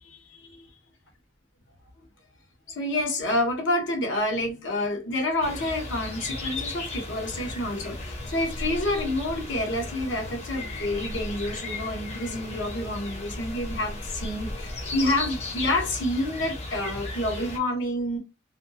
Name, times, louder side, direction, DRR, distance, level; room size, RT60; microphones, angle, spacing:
voice 1, 0.0-0.7 2.7-18.2, left 1 dB, 80° left, 1.0 m, -28 dB
sound 1, 5.4-17.6, left 2 dB, 35° left, 0.7 m, -35 dB
2.6 x 2.3 x 2.7 m
head